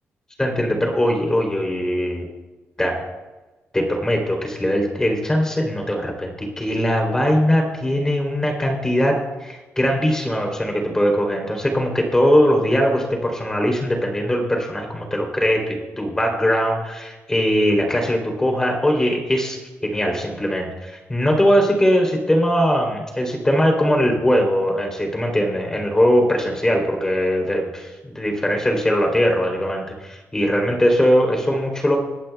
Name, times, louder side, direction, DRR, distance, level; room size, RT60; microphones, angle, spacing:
voice 1, 0.4-2.3 2.8-3.1 3.7-32.0, equal, 10° left, 2 dB, 3.2 m, -20 dB
27.0 x 11.5 x 2.3 m, 1.2 s
wide cardioid pair, 150°, 5 cm